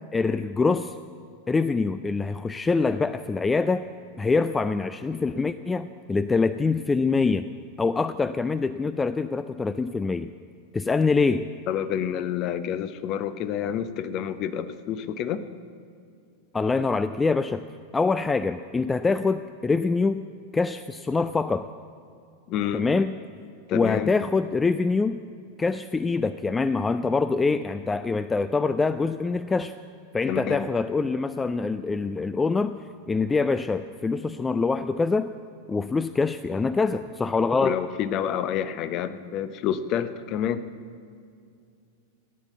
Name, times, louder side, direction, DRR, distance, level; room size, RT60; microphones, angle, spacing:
voice 1, 0.1-1.0 1.5-3.9 4.2-7.5 7.8-10.3 10.7-11.5 16.5-17.7 17.9-20.2 20.5-21.7 22.7-23.1 23.7-25.2 25.6-29.7 30.1-32.8 33.1-35.3 35.7-37.8, left 4 dB, 15° left, 12 dB, 0.4 m, -24 dB
voice 2, 11.7-15.4 22.5-22.8 23.7-24.1 30.2-30.6 37.6-40.6, left 9 dB, 40° left, 12 dB, 0.8 m, -28 dB
16.0 x 9.7 x 8.2 m, 2.4 s
figure-of-eight pair, 90°, 0 cm